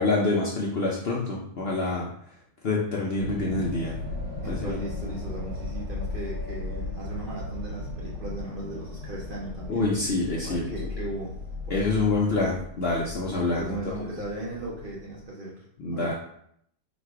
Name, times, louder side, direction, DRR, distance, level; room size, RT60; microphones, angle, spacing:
voice 1, 0.0-2.1 2.6-3.9 4.4-4.8 9.7-10.9 11.7-13.8 15.8-16.1, left 3 dB, 55° left, -3 dB, 0.7 m, -26 dB
sound 1, 3.2-15.3, left 2 dB, 70° right, 2.5 m, -36 dB
voice 2, 4.4-9.8 10.4-11.4 11.6-12.0 13.5-15.7 15.9-16.1, right 2 dB, 45° right, -4 dB, 0.8 m, -37 dB
4.1 x 2.4 x 4.6 m, 0.69 s
omnidirectional pair, 1.6 m